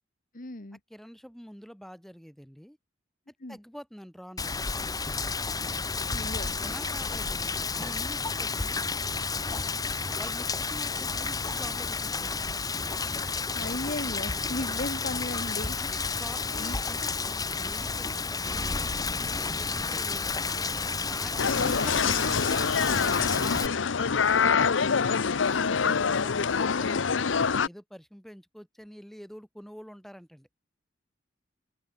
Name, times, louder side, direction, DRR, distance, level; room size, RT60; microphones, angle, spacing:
voice 1, 0.3-0.8 3.4-3.6 6.1-6.5 13.5-15.8 16.5-16.8 24.3-24.8, left 2 dB, 45° left, 1.7 m, -36 dB
voice 2, 0.9-2.8 3.5-4.7 6.5-8.9 10.2-12.4 15.8-17.1 17.4-18.9 19.3-23.8 24.9-27.3 27.6-30.5, equal, ahead, 5.5 m, -46 dB
Rain, 4.4-23.7, left 4 dB, 20° left, 1.0 m, -31 dB
sound 1, 21.4-27.7, left 6 dB, 85° left, 0.7 m, -25 dB
open air
head